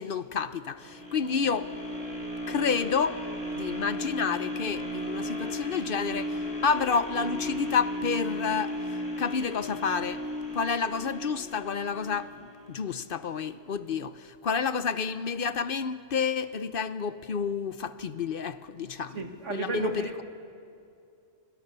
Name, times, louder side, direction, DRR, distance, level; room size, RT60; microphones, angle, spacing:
voice 1, 0.0-1.7 2.5-3.2 3.5-8.8 9.2-10.2 10.5-12.3 12.7-19.9, left 6 dB, 55° left, 0.9 m, -29 dB
sound 1, 0.8-12.9 13.4-13.5, left 1 dB, 35° left, 3.8 m, -35 dB
voice 2, 19.1-20.2, right 5 dB, 80° right, 2.3 m, -33 dB
27.5 x 24.5 x 6.8 m
omnidirectional pair, 1.2 m